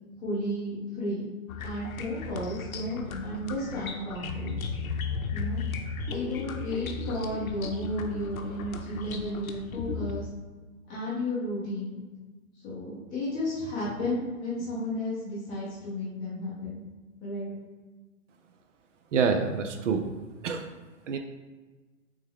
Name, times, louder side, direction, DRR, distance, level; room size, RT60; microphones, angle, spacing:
voice 1, 0.2-1.2 1.6-4.6 5.3-5.6 6.1-10.3 10.9-12.0 12.6-16.8 17.2-17.5, left 1 dB, 10° left, -8 dB, 0.6 m, -33 dB
sound 1, 1.5-10.2, left 4 dB, 80° left, 0.7 m, -35 dB
voice 2, 19.1-20.1 20.4-20.7 21.1-21.2, right 5 dB, 60° right, 6 dB, 0.5 m, -26 dB
3.5 x 3.2 x 3.5 m, 1.3 s
hypercardioid pair, 155°, 42 cm